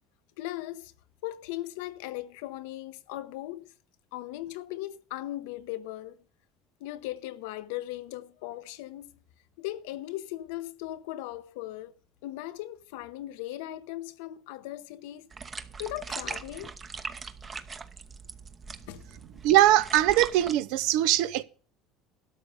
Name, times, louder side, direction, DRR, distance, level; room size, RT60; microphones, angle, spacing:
voice 1, 0.4-0.9 1.2-3.7 4.1-6.2 6.8-9.2 9.6-11.9 12.2-15.3 15.8-16.7 18.9-19.0, left 15 dB, 85° left, 0.9 m, -38 dB
sound 1, 15.3-20.5, right 5 dB, 25° right, 0.9 m, -40 dB
voice 2, 19.4-21.4, right 14 dB, 75° right, 0.7 m, -21 dB
12.5 x 6.6 x 6.8 m
supercardioid pair, 125°, 0 cm